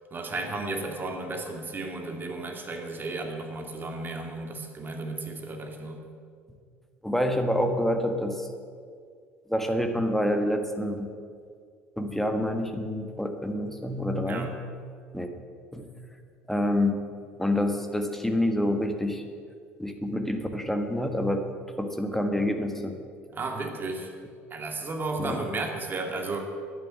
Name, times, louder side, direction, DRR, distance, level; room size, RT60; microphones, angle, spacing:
voice 1, 0.1-6.1 14.3-14.5 23.3-24.1 24.5-26.5, right 2 dB, 30° right, 3 dB, 2.2 m, -34 dB
voice 2, 7.0-8.5 9.5-11.1 12.0-14.6 15.1-15.3 15.7-15.9 16.5-17.0 17.4-19.2 19.8-21.5 21.8-23.0 25.2-25.5, left 1 dB, 5° left, 6 dB, 1.5 m, -27 dB
11.0 x 9.0 x 7.4 m, 2.1 s
figure-of-eight pair, 60°, 7 cm